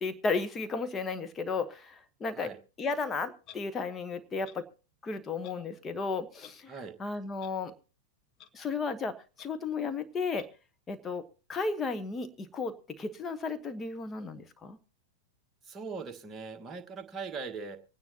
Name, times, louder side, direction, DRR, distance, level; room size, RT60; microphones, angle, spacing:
voice 1, 0.0-2.5 2.8-4.6 5.0-6.7 7.0-7.7 8.5-10.5 10.9-11.2 11.5-14.8, left 4 dB, 20° left, 10 dB, 1.2 m, -34 dB
Clock, 3.4-3.6 4.4-4.6 5.4-5.5 6.4-6.5 7.4-7.5 8.4-8.5 9.4-9.5 10.4-10.5, left 11 dB, 35° left, 0.9 m, -50 dB
voice 2, 15.6-17.8, right 4 dB, 20° right, 4 dB, 1.5 m, -40 dB
25.5 x 9.5 x 2.9 m, 0.35 s
figure-of-eight pair, 90°, 0 cm